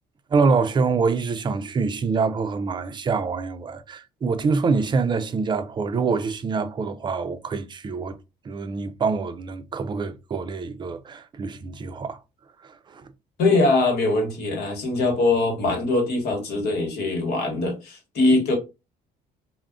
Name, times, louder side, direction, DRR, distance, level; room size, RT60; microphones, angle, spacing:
voice 1, 0.3-8.2 8.4-12.2 12.6-13.1, right 4 dB, 25° right, 0.4 m, -25 dB
voice 2, 13.4-18.6, left 2 dB, 70° left, 1.1 m, -22 dB
2.4 x 2.1 x 3.5 m
cardioid pair, 110°, 17 cm